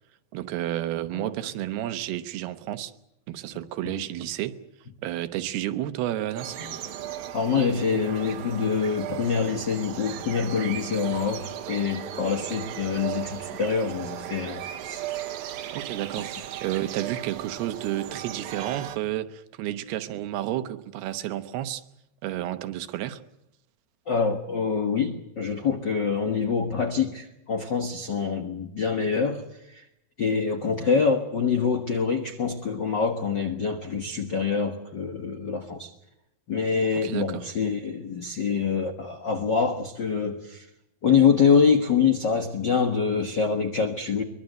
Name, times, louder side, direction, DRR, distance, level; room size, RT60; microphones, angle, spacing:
voice 1, 0.3-2.9 3.3-4.6 5.0-6.6 15.7-21.8 22.2-23.2 37.0-37.5, right 13 dB, 85° right, 11 dB, 3.0 m, -31 dB
sound 1, 1.1-2.8 3.8-3.9 6.6-8.3 12.1-13.4, equal, 50° left, 6.4 m, -51 dB
sound 2, 6.4-19.0, right 11 dB, 65° right, 2.1 m, -36 dB
voice 2, 7.3-15.0 24.1-29.4 29.7-29.8 30.2-35.9 36.5-40.6 41.0-44.2, left 6 dB, 75° left, 6 dB, 1.0 m, -25 dB
23.5 x 21.5 x 7.9 m, 0.84 s
omnidirectional pair, 4.5 m